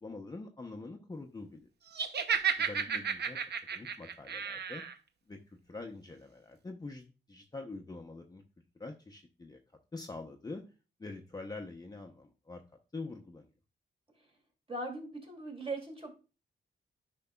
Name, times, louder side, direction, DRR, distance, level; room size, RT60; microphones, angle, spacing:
voice 1, 0.0-1.7 2.6-3.4 3.7-4.8 5.3-5.4 5.7-8.4 8.8-9.6 9.9-10.6 11.0-12.6 12.9-13.5, left 3 dB, 20° left, 3 dB, 0.7 m, -45 dB
Laughter, 1.9-4.9, right 7 dB, 55° right, 0.7 m, -33 dB
voice 2, 14.7-16.1, right 2 dB, 30° right, 2 dB, 2.6 m, -40 dB
10.5 x 5.3 x 2.3 m, 0.32 s
cardioid pair, 105°, 20 cm